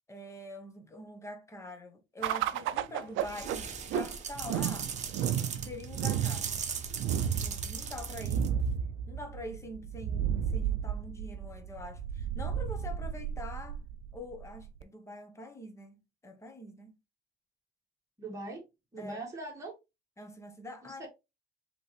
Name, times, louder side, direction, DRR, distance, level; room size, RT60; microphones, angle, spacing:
voice 1, 0.1-4.9 5.6-6.5 7.2-8.6 9.1-13.8 14.1-17.0 19.0-19.2 20.2-21.0, left 1 dB, 15° left, 0.9 m, -45 dB
sound 1, 2.2-14.8, right 9 dB, 75° right, 0.4 m, -33 dB
sound 2, 3.2-8.8, right 6 dB, 35° right, 0.9 m, -39 dB
voice 2, 18.2-18.6 18.9-19.7 20.8-21.1, right 2 dB, 15° right, 2.1 m, -41 dB
5.3 x 3.0 x 3.1 m
cardioid pair, 150°, 20 cm